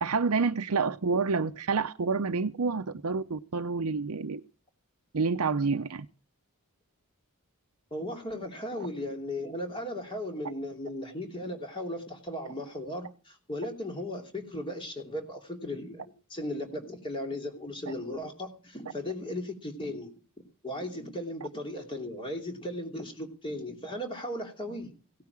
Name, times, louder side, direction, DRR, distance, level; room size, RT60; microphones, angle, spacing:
voice 1, 0.0-4.4 5.1-6.1 8.8-8.9, right 4 dB, 75° right, 9 dB, 0.7 m, -28 dB
voice 2, 7.9-20.1 20.6-24.9, left 1 dB, 25° left, 3 dB, 3.0 m, -36 dB
17.5 x 9.5 x 4.8 m, 0.38 s
head